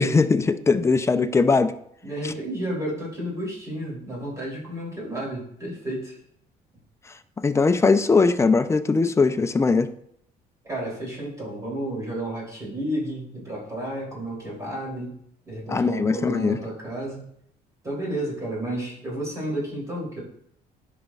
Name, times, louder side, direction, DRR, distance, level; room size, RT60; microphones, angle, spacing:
voice 1, 0.0-1.7 2.2-2.3 7.4-9.9 15.7-16.6, left 4 dB, 15° left, 10 dB, 0.4 m, -20 dB
voice 2, 2.0-6.2 10.6-15.2 15.5-17.3 17.8-20.2, right 1 dB, 20° right, -4 dB, 3.1 m, -31 dB
10.5 x 5.1 x 2.4 m, 0.68 s
cardioid pair, 110°, 17 cm